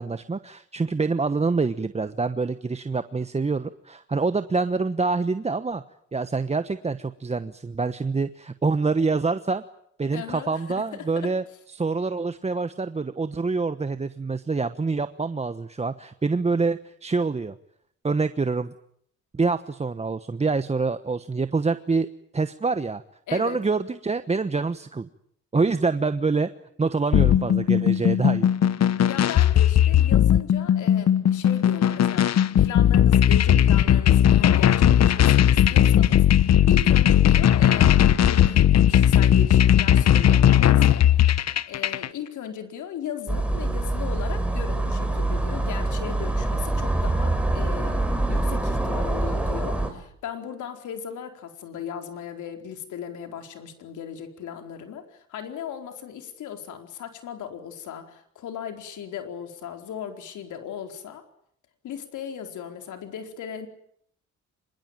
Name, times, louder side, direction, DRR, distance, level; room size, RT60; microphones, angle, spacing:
voice 1, 0.0-5.8 6.1-9.6 10.0-11.4 11.7-17.6 18.0-18.7 19.3-22.1 22.3-23.0 23.3-25.1 25.5-26.5 26.8-28.5, right 4 dB, 20° right, 11 dB, 1.1 m, -26 dB
voice 2, 10.1-11.3 23.3-23.6 28.8-41.1 41.7-61.2 61.8-63.7, left 8 dB, 80° left, 5 dB, 4.5 m, -37 dB
sound 1, 27.1-42.1, left 10 dB, 60° left, 1.2 m, -18 dB
sound 2, 43.3-49.9, right 2 dB, 5° right, 5.4 m, -25 dB
26.0 x 22.5 x 9.1 m, 0.69 s
cardioid pair, 90°, 30 cm